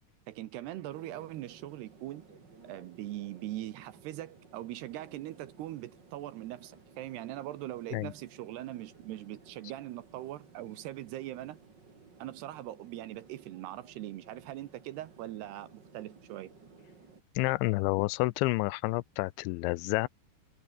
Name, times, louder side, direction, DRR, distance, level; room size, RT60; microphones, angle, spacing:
voice 1, 0.3-2.3 2.6-11.6 12.2-16.5, right 14 dB, 70° right, 2.8 m, -41 dB
sound 1, 0.9-17.2, right 4 dB, 25° right, 3.1 m, -57 dB
voice 2, 17.4-20.1, left 22 dB, 85° left, 2.8 m, -29 dB
omnidirectional pair, 5.5 m